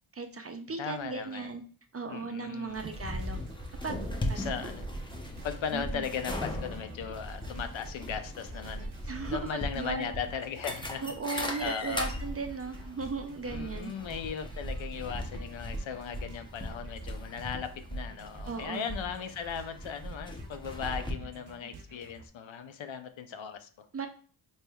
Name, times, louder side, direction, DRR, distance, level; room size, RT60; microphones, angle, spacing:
voice 1, 0.1-1.6 1.9-3.4 3.8-4.7 5.7-6.1 9.1-10.1 11.0-13.9 18.4-18.8 23.9-24.1, right 4 dB, 30° right, 6 dB, 0.4 m, -36 dB
voice 2, 0.8-1.5 2.1-2.8 4.4-4.8 5.4-11.0 11.3-12.1 13.4-23.9, left 7 dB, 65° left, 8 dB, 0.6 m, -38 dB
sound 1, 2.7-21.1, equal, 10° left, 0.7 m, -38 dB
sound 2, 2.7-22.3, right 3 dB, 70° right, 0.8 m, -50 dB
4.1 x 3.2 x 2.3 m, 0.42 s
cardioid pair, 70°, 50 cm